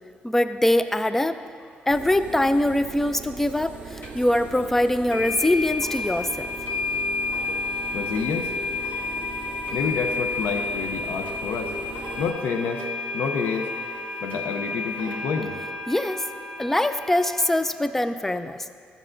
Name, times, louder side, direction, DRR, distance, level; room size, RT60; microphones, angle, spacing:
voice 1, 0.2-1.4 1.9-6.5 15.9-16.2 16.6-18.7, left 1 dB, 10° left, 11 dB, 0.3 m, -23 dB
sound 1, 1.9-12.3, right 5 dB, 40° right, 0.7 m, -40 dB
sound 2, 4.0-4.1 5.1-17.5, left 3 dB, 55° left, 1.6 m, -31 dB
voice 2, 7.9-8.5 9.7-11.8 12.2-12.9 13.1-13.7 14.2-15.5, left 5 dB, 80° left, 5 dB, 0.6 m, -28 dB
13.5 x 7.5 x 2.5 m, 2.2 s
cardioid pair, 100°, 4 cm